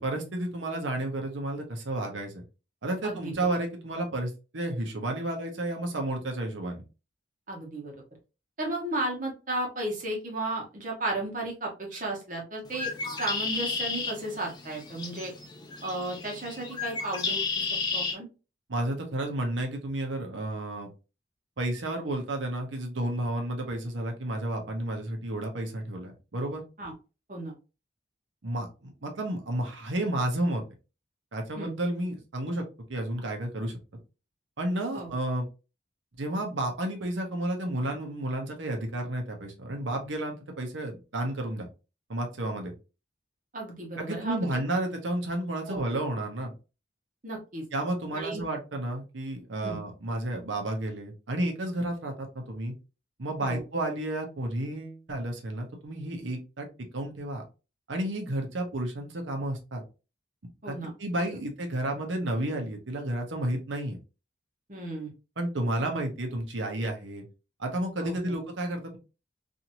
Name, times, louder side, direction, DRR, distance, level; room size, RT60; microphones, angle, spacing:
voice 1, 0.0-2.4 2.8-6.8 18.7-20.9 21.6-26.6 28.4-30.6 31.3-32.6 32.9-33.8 34.6-35.5 36.2-41.7 42.1-42.7 44.0-46.5 47.7-52.7 53.2-56.7 56.9-57.4 57.9-59.8 60.7-64.0 65.4-67.2 67.6-69.0, right 1 dB, 80° right, 3 dB, 0.8 m, -31 dB
voice 2, 3.0-3.3 7.5-7.9 8.6-12.9 13.2-15.3 15.8-17.7 17.9-18.3 26.8-26.9 27.3-27.5 31.6-31.7 34.9-35.1 43.5-44.6 45.7-45.8 47.2-47.6 48.1-48.4 49.6-49.8 53.4-53.6 60.6-60.9 64.7-65.1 68.0-68.3, right 2 dB, 45° right, 0 dB, 1.1 m, -34 dB
Bird, 12.7-18.1, left 4 dB, 20° left, 0.5 m, -33 dB
2.9 x 2.6 x 2.6 m, 0.31 s
head